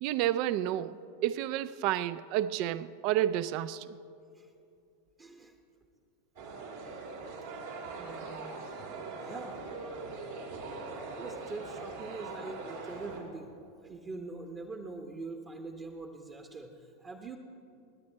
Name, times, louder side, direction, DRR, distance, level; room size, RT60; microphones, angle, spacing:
voice 1, 0.0-3.9, right 12 dB, 50° right, 16 dB, 0.4 m, -30 dB
voice 2, 5.2-5.6 7.9-8.7 9.2-10.1 10.5-17.4, right 3 dB, 25° right, 4 dB, 1.0 m, -44 dB
sound 1, 6.4-13.2, right 3 dB, 70° right, 2.1 m, -42 dB
17.5 x 9.6 x 4.5 m, 2.5 s
hypercardioid pair, 95°, 0 cm